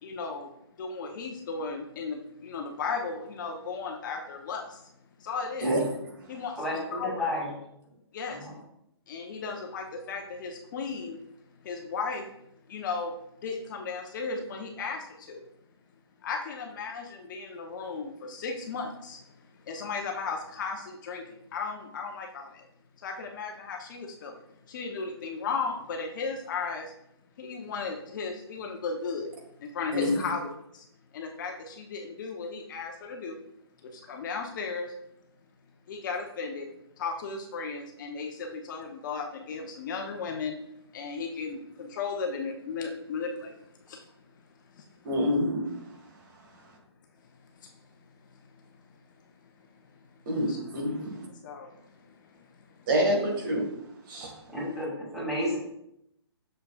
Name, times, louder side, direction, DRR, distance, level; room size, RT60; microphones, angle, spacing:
voice 1, 0.0-4.9 5.2-5.8 6.3-6.6 6.9-7.2 8.1-8.5 9.1-11.2 11.6-12.2 12.7-13.1 13.4-15.4 16.2-22.7 23.0-26.9 27.4-29.3 29.6-30.9 31.1-33.4 33.8-34.9 35.9-36.7 37.0-40.6 40.9-44.5 44.7-44.9 47.6-47.8 48.3-48.6 49.2-50.6 50.9-52.9, left 4 dB, 45° left, 2 dB, 0.8 m, -36 dB
voice 2, 6.6-7.5 8.4-8.5 54.5-55.6, left 1 dB, ahead, -7 dB, 2.4 m, -31 dB
voice 3, 45.0-45.6 50.2-51.2 52.9-53.7 54.1-54.3, equal, 50° right, 0 dB, 1.7 m, -27 dB
6.5 x 6.4 x 2.4 m, 0.77 s
hypercardioid pair, 140°, 14 cm